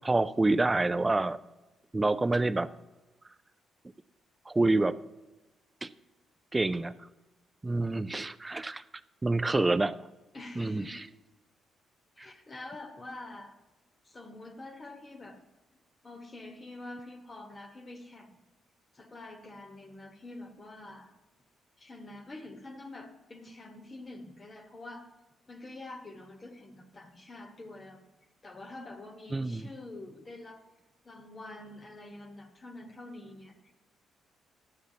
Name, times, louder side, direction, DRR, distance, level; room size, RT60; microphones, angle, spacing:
voice 1, 0.0-1.4 1.9-2.7 4.5-5.0 5.8-5.9 6.5-6.9 7.6-8.8 9.2-10.0 10.6-11.0 29.3-29.7, right 2 dB, 20° right, 14 dB, 0.3 m, -27 dB
voice 2, 10.3-11.1 12.2-13.5 14.0-15.4 16.0-18.4 18.9-21.1 21.8-25.1 25.5-28.0 28.4-30.6 31.0-33.7, left 2 dB, 30° left, 5 dB, 1.1 m, -46 dB
11.5 x 6.6 x 2.8 m, 1.1 s
cardioid pair, 90°, 0 cm